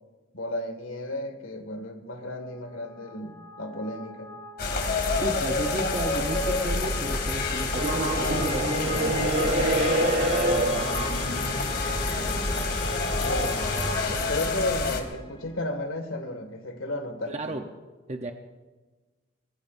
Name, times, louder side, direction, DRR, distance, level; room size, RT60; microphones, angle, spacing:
voice 1, 0.3-4.3 11.6-12.4 12.9-13.7 14.1-17.6, left 1 dB, 80° left, 6 dB, 2.1 m, -34 dB
sound 1, 2.4-15.2, left 2 dB, 25° left, 2.9 m, -37 dB
sound 2, 4.6-15.0, left 3 dB, 50° left, 2.6 m, -28 dB
voice 2, 5.1-10.0 10.6-10.9 17.3-17.7 18.1-18.3, right 1 dB, 35° right, 4 dB, 0.9 m, -34 dB
sound 3, 7.7-15.0, right 1 dB, 65° right, 3.8 m, -28 dB
25.0 x 21.0 x 2.7 m, 1.3 s
head